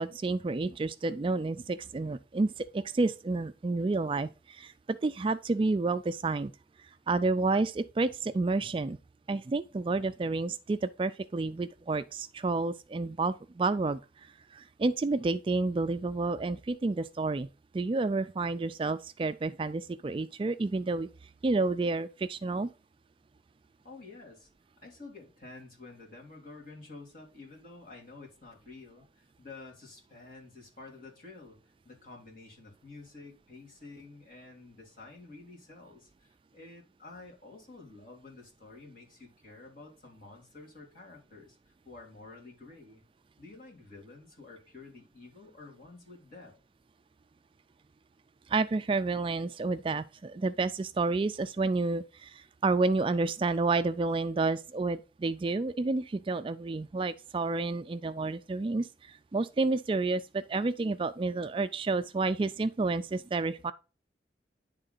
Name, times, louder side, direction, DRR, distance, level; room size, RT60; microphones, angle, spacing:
voice 1, 0.0-6.5 7.1-9.0 9.3-17.5 17.7-21.1 21.4-22.7 48.5-63.7, right 3 dB, 30° right, 0.3 m, -30 dB
voice 2, 23.8-24.5 24.8-31.6 31.8-41.6 41.8-43.0 43.4-46.5, left 3 dB, 50° left, 2.9 m, -50 dB
10.0 x 3.7 x 3.9 m
head